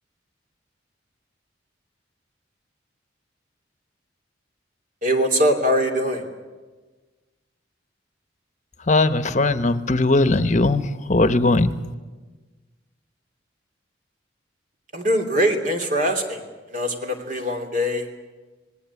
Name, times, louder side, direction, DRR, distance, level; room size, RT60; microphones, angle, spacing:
voice 1, 5.0-6.3 14.9-18.2, equal, 45° right, 4 dB, 3.0 m, -22 dB
voice 2, 8.9-11.7, left 2 dB, 40° left, 11 dB, 1.0 m, -19 dB
27.0 x 19.5 x 8.4 m, 1.3 s
head